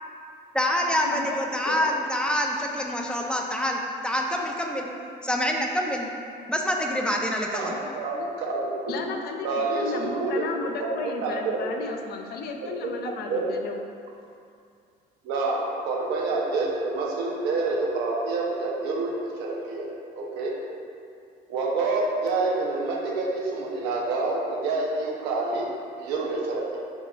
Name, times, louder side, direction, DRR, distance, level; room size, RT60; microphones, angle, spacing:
voice 1, 0.5-4.9 5.2-6.1 6.5-7.7, equal, 5° left, 0 dB, 0.4 m, -26 dB
voice 2, 1.1-2.0 8.9-13.8, left 4 dB, 70° left, 4 dB, 0.4 m, -34 dB
voice 3, 7.5-9.0 9.4-10.5 10.8-10.9 11.2-11.6 12.8-13.4 15.2-19.9 20.2-20.5 21.5-25.7 26.0-26.8, right 3 dB, 85° right, -2 dB, 0.7 m, -27 dB
3.9 x 2.3 x 4.4 m, 2.4 s
cardioid pair, 110°, 17 cm